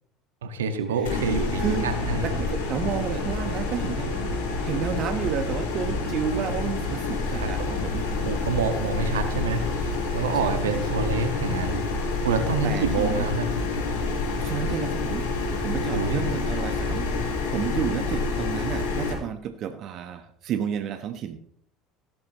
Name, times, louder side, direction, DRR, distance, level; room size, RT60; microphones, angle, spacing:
voice 1, 0.4-2.4 7.4-7.5 8.2-9.6 10.1-11.8 12.2-13.5 15.9-16.3, right 4 dB, 80° right, 7 dB, 1.5 m, -27 dB
sound 1, 1.0-19.1, left 3 dB, 75° left, 4.6 m, -28 dB
voice 2, 1.6-1.9 2.2-4.3 4.6-8.0 10.3-11.2 12.2-13.3 14.4-15.3 15.6-21.4, right 8 dB, 50° right, 9 dB, 1.1 m, -31 dB
16.0 x 12.5 x 3.0 m, 0.65 s
hypercardioid pair, 70°, 0 cm